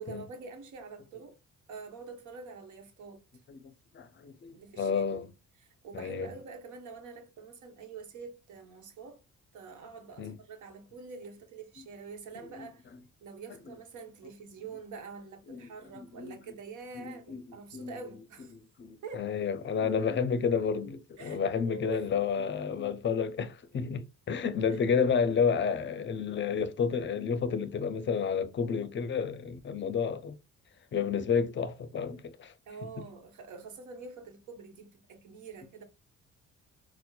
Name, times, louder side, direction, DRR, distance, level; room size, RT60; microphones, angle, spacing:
voice 1, 0.0-1.4 1.7-3.2 4.5-5.0 5.6-9.2 9.5-12.9 13.2-18.5 19.0-19.3 21.2-22.0 24.7-24.8 32.7-35.8, right 4 dB, 75° right, 1.0 m, -46 dB
voice 2, 3.5-5.3 5.9-6.3 10.2-10.4 12.4-12.7 13.7-13.8 15.5-15.7 16.2-16.4 16.9-17.4 17.7-17.9 18.5-30.4 30.9-32.5, left 6 dB, 40° left, 0.5 m, -31 dB
4.3 x 2.0 x 2.3 m
cardioid pair, 90°, 30 cm